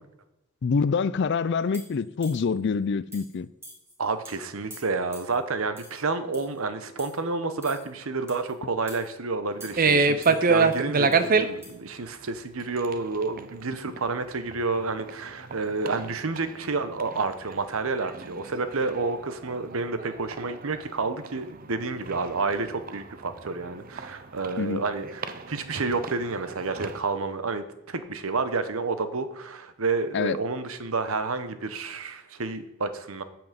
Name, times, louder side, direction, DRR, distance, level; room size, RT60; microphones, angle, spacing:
voice 1, 0.6-3.5 24.6-24.8 30.1-30.4, left 5 dB, 50° left, 0.4 m, -26 dB
sound 1, 1.7-2.6 3.1-3.3 3.6-3.9 4.2-4.4 4.7-5.4 5.8-6.0 6.3-6.6 7.0-7.2 7.6-7.9 8.3-8.5 8.9-9.1 9.6-9.9 10.2-11.2 11.6-11.7, right 1 dB, 10° right, 2.4 m, -47 dB
voice 2, 4.0-33.2, right 3 dB, 65° right, 0.9 m, -30 dB
sound 2, 9.7-11.5 12.6-12.9 13.2-13.4 14.0-14.1 14.5-14.6 14.9-15.6 15.9-17.2 17.5-20.8 21.2-24.5 25.0-27.0, right 4 dB, 40° right, 0.6 m, -26 dB
8.7 x 6.0 x 7.4 m
head